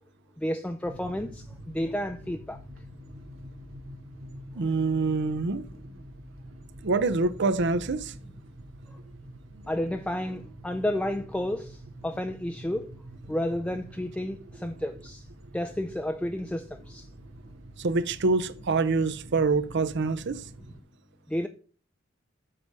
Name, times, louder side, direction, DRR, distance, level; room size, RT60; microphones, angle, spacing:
voice 1, 0.4-2.6 8.9-9.0 9.7-12.9 13.3-15.3 15.5-17.1 21.3-21.5, left 1 dB, 5° left, 0.4 m, -31 dB
sound 1, 0.8-20.8, right 1 dB, 90° right, 1.7 m, -46 dB
voice 2, 4.5-5.6 6.8-8.1 17.8-20.4, right 3 dB, 60° right, 0.6 m, -25 dB
7.7 x 4.7 x 5.2 m
head